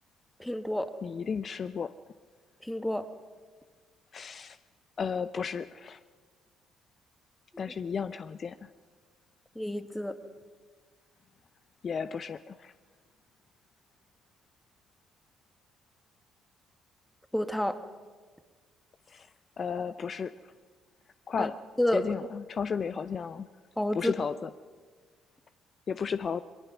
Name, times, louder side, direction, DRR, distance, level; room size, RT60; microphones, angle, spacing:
voice 1, 0.4-0.9 2.6-3.1 9.6-10.2 17.3-17.8 21.4-21.5 21.8-22.1 23.8-24.1, left 1 dB, 5° left, 10 dB, 1.6 m, -29 dB
voice 2, 1.0-1.9 4.1-4.6 5.0-6.0 7.6-8.7 11.8-12.7 19.1-19.3 19.6-20.3 21.3-21.5 21.9-23.5 23.9-24.5 25.9-26.4, left 6 dB, 45° left, 13 dB, 0.6 m, -33 dB
22.5 x 21.5 x 6.1 m, 1.5 s
figure-of-eight pair, 50°, 0 cm